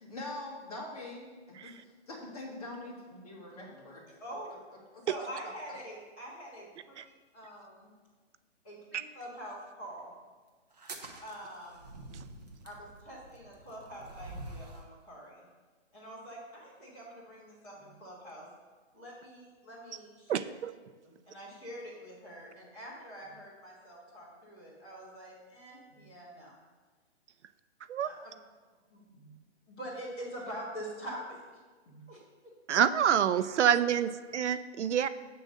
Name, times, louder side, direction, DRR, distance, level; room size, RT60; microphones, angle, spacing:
voice 1, 0.0-4.0 4.9-5.0, left 2 dB, 35° left, -3 dB, 1.5 m, -43 dB
voice 2, 5.0-6.9 7.3-7.9 8.6-10.1 11.2-11.8 12.6-15.4 15.9-18.5 18.9-20.5 21.0-26.5 28.0-28.3 28.9-29.3 29.7-31.4 31.8-32.2 33.4-33.6, equal, 10° left, -9 dB, 1.5 m, -45 dB
sound 1, 10.7-14.9, right 2 dB, 35° right, 0.6 m, -47 dB
voice 3, 20.3-20.7 27.9-28.1 32.7-35.1, right 9 dB, 80° right, 13 dB, 0.5 m, -27 dB
7.6 x 3.8 x 6.4 m, 1.4 s
hypercardioid pair, 180°, 35 cm